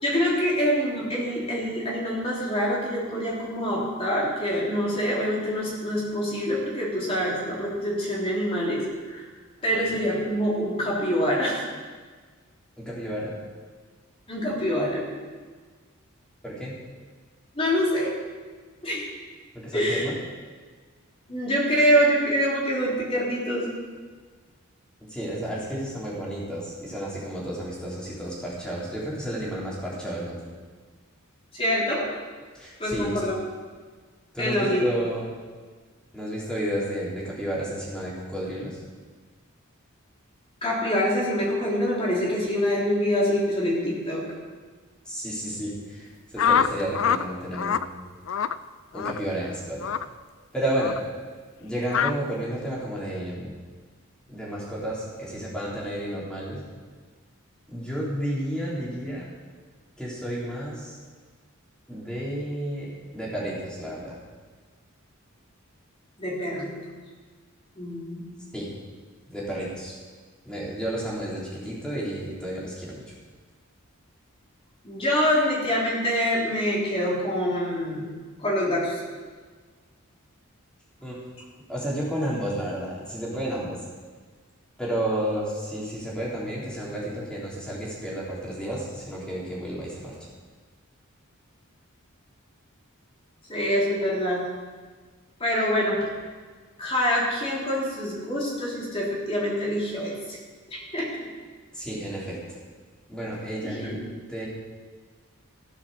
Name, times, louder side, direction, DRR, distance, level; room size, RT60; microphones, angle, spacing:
voice 1, 0.0-9.2 9.6-11.6 14.3-15.2 17.6-18.1 18.8-19.1 19.7-20.0 21.3-23.7 31.5-32.1 32.8-33.4 34.4-34.9 40.6-44.3 66.2-66.8 67.8-68.3 74.8-78.1 78.4-79.0 93.5-94.4 95.4-96.0 96.8-100.4 100.7-101.1 103.6-104.0, equal, 25° left, -5 dB, 3.4 m, -25 dB
voice 2, 12.8-13.4 16.4-16.8 19.6-20.2 25.1-30.4 32.5-33.1 34.3-35.3 36.1-38.8 45.1-47.9 48.9-49.9 50.5-51.0 51.6-53.6 54.3-56.7 57.7-59.2 60.0-61.0 61.9-64.2 68.5-68.7 69.3-69.9 70.4-73.1 81.0-81.2 81.7-83.8 84.8-90.1 101.7-102.4 103.1-104.0 104.3-104.5, right 1 dB, 5° left, -7 dB, 3.5 m, -31 dB
sound 1, 46.4-47.2 47.5-47.8 48.3-48.6 48.9-49.2 49.8-50.0 50.8-51.0 51.9-52.1, left 8 dB, 65° left, 0.4 m, -24 dB
15.0 x 7.2 x 6.7 m, 1.5 s
head